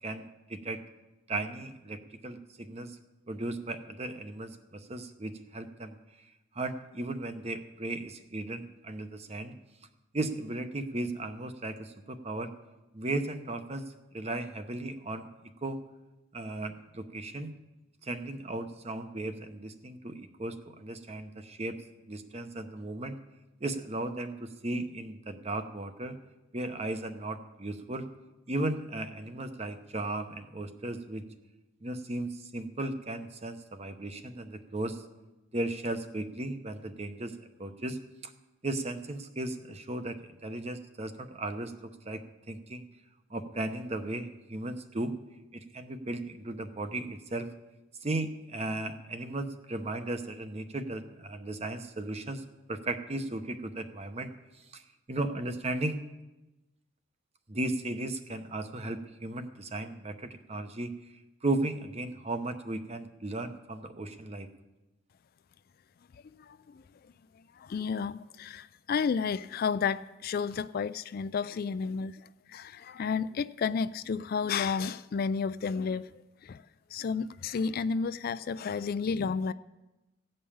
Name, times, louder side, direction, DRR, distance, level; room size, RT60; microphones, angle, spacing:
voice 1, 0.0-0.8 1.3-3.0 3.3-5.9 6.5-9.5 10.1-12.5 12.9-15.3 15.6-15.8 16.3-17.5 18.0-21.8 22.1-23.2 23.6-26.2 26.5-28.1 28.5-31.2 31.8-35.0 35.5-38.3 38.6-42.2 42.5-42.8 43.3-45.1 45.5-47.5 48.0-54.3 54.7-54.8 55.1-56.0 57.5-60.9 61.4-64.5, right 2 dB, 30° right, 8 dB, 0.8 m, -36 dB
voice 2, 67.7-72.1 72.5-76.1 76.5-76.6 76.9-79.5, left 5 dB, 50° left, 14 dB, 0.3 m, -31 dB
16.0 x 5.5 x 8.6 m, 1.0 s
head